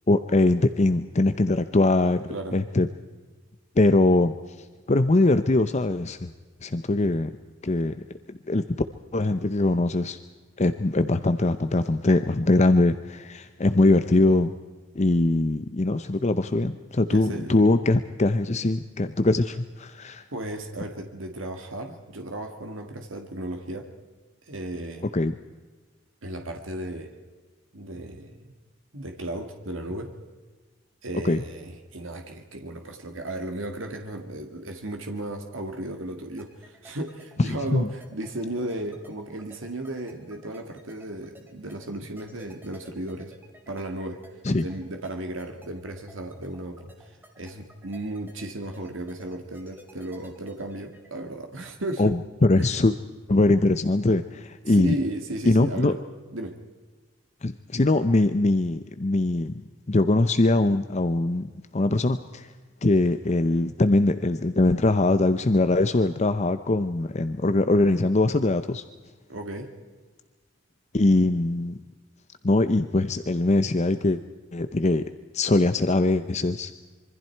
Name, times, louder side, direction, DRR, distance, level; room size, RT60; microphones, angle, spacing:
voice 1, 0.1-2.9 3.8-4.3 4.9-6.3 6.6-7.3 7.6-8.0 8.5-8.6 9.1-10.2 10.6-14.5 15.0-20.2 25.1-25.3 31.2-31.4 37.4-37.9 44.4-44.6 52.0-52.9 53.3-54.9 55.5-55.9 57.4-59.5 59.9-62.5 62.8-68.8 70.9-71.8 72.4-74.2 74.5-75.1 75.3-76.7, left 2 dB, 35° left, 10 dB, 0.7 m, -22 dB
voice 2, 2.3-2.6 17.1-17.6 20.3-23.9 24.5-25.1 26.2-27.1 27.7-28.4 28.9-30.1 31.0-43.3 43.7-44.2 44.6-52.1 52.6-52.7 54.7-56.0 56.3-56.6 69.3-69.7, right 1 dB, 85° right, 4 dB, 2.0 m, -35 dB
sound 1, 36.4-51.1, equal, 10° right, 3.2 m, -52 dB
26.0 x 24.0 x 4.6 m, 1.4 s
head